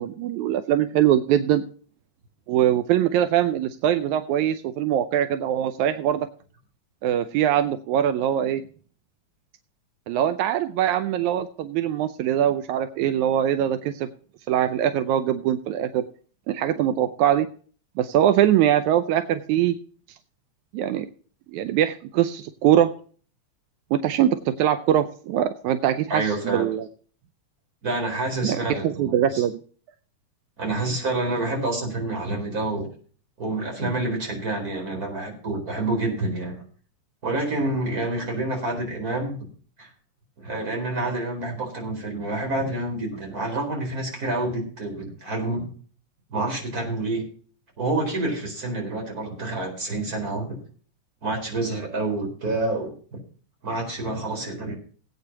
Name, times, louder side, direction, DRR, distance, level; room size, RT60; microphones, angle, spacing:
voice 1, 0.0-1.6 2.5-6.3 7.0-8.6 10.1-14.1 14.5-16.0 16.5-17.5 18.0-19.8 20.7-21.1 21.5-22.9 23.9-26.9 28.4-29.6, right 11 dB, 80° right, 10 dB, 2.1 m, -22 dB
voice 2, 26.1-26.7 27.8-29.4 30.6-32.9 33.4-36.5 37.2-39.4 39.8-39.9 40.4-45.7 46.3-47.2 47.8-50.6 51.2-53.2 53.6-54.7, right 2 dB, 30° right, 1 dB, 4.7 m, -28 dB
19.5 x 8.9 x 2.9 m, 0.43 s
omnidirectional pair, 3.4 m